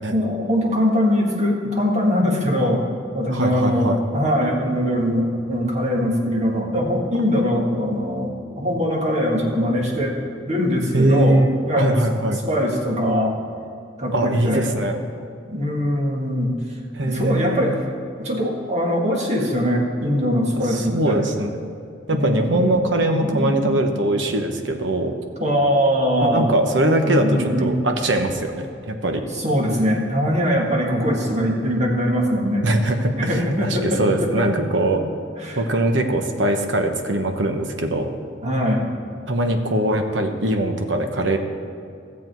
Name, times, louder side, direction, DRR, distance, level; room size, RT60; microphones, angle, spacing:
voice 1, 0.1-2.8 3.1-10.2 10.5-11.4 11.6-12.0 12.5-13.4 14.0-14.6 15.5-16.5 17.0-17.7 18.2-21.2 22.1-22.7 23.0-23.8 25.4-26.5 27.0-27.8 29.3-32.6 33.2-34.7 34.9-35.0 35.4-35.6 38.4-38.8, equal, 35° right, -1 dB, 1.8 m, -22 dB
voice 2, 3.3-4.0 10.9-12.4 14.1-15.0 17.0-17.7 20.7-21.5 22.1-25.1 26.2-29.2 32.6-35.0 35.6-38.1 39.3-41.4, right 1 dB, 70° right, 5 dB, 1.0 m, -21 dB
14.5 x 7.4 x 4.6 m, 2.5 s
head